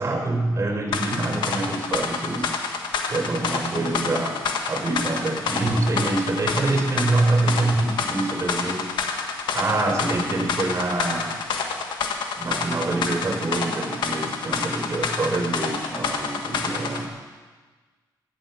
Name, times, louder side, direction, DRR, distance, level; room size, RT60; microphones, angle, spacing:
voice 1, 0.0-2.5 3.1-4.4 4.7-8.8 9.5-11.4 12.4-17.1, right 2 dB, 35° right, 1 dB, 4.1 m, -25 dB
sound 1, 0.9-17.0, left 5 dB, 90° left, 1.5 m, -28 dB
13.5 x 10.5 x 8.2 m, 1.4 s
cardioid pair, 75°, 8 cm